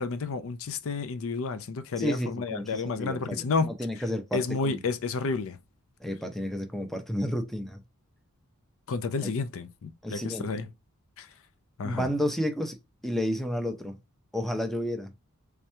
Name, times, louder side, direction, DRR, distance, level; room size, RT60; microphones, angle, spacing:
voice 1, 0.0-3.7 4.3-5.6 8.9-10.7 11.2-11.3 11.8-12.1, left 4 dB, 65° left, 0.4 m, -30 dB
voice 2, 2.0-4.8 6.0-7.8 9.2-9.3 10.0-10.5 11.8-12.8 13.0-14.0 14.3-15.1, equal, ahead, 0.5 m, -31 dB
3.5 x 2.9 x 3.2 m
head